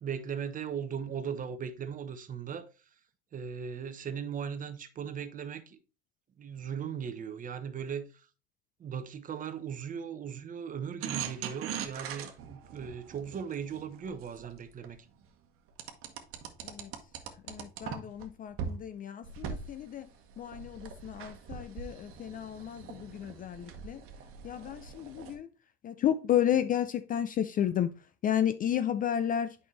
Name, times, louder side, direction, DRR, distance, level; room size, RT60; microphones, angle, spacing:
voice 1, 0.0-2.7 3.3-5.8 6.4-8.3 8.8-15.1, right 7 dB, 25° right, 0.9 m, -38 dB
sound 1, 11.0-14.9 15.8-18.2 18.6-18.8 19.2-25.3, right 7 dB, 45° right, 1.3 m, -41 dB
voice 2, 17.5-20.1 20.4-24.0 24.4-25.5 25.8-27.9 28.2-29.6, left 10 dB, 30° left, 0.4 m, -32 dB
8.4 x 5.5 x 3.2 m
hypercardioid pair, 90°, 30 cm